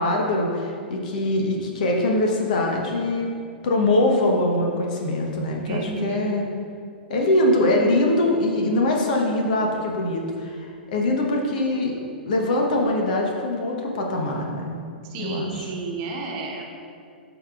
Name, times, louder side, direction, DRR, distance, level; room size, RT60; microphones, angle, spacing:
voice 1, 0.0-3.3 3.6-6.4 7.1-11.9 12.2-14.8 15.2-15.7, left 1 dB, 50° left, 1 dB, 1.1 m, -23 dB
voice 2, 5.7-6.2 15.0-16.6, right 3 dB, 35° right, -1 dB, 1.2 m, -31 dB
12.0 x 5.1 x 2.5 m, 2.3 s
figure-of-eight pair, 105°, 6 cm